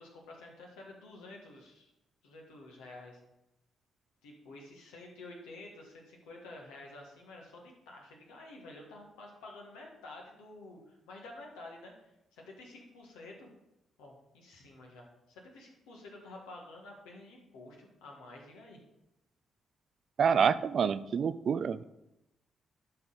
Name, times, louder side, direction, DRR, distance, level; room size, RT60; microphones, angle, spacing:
voice 1, 0.0-1.9 2.2-3.2 4.2-13.5 14.0-18.8, left 2 dB, 75° left, 0 dB, 1.6 m, -50 dB
voice 2, 20.2-21.8, right 6 dB, 55° right, 15 dB, 0.3 m, -27 dB
12.0 x 4.6 x 4.0 m, 0.89 s
hypercardioid pair, 40°, 0 cm